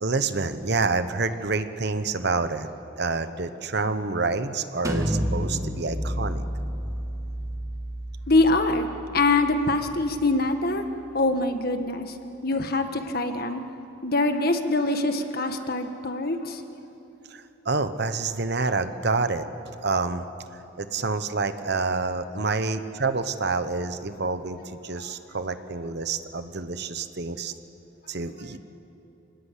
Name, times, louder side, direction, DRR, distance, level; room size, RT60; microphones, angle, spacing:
voice 1, 0.0-2.7 3.0-6.4 17.3-20.2 20.8-27.5 28.1-28.6, right 3 dB, 60° right, 10 dB, 1.1 m, -28 dB
sound 1, 4.8-10.5, equal, 15° right, 1.8 m, -31 dB
voice 2, 8.3-8.9 9.1-10.8 11.1-12.1 12.4-13.6 14.0-16.6, left 2 dB, 50° left, 7 dB, 1.6 m, -24 dB
27.5 x 19.5 x 8.3 m, 3.0 s
head